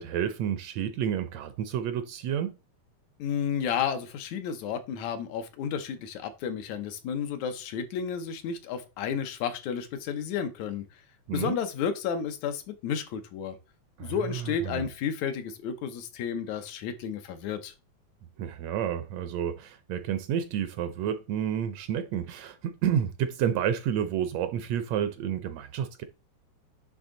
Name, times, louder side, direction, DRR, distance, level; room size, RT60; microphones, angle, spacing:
voice 1, 0.0-2.5 11.3-11.6 14.0-14.9 18.4-26.0, right 9 dB, 75° right, 1.7 m, -30 dB
voice 2, 3.2-10.8 11.3-13.6 14.0-17.7, left 7 dB, 80° left, 2.1 m, -32 dB
9.9 x 3.4 x 3.8 m
omnidirectional pair, 3.3 m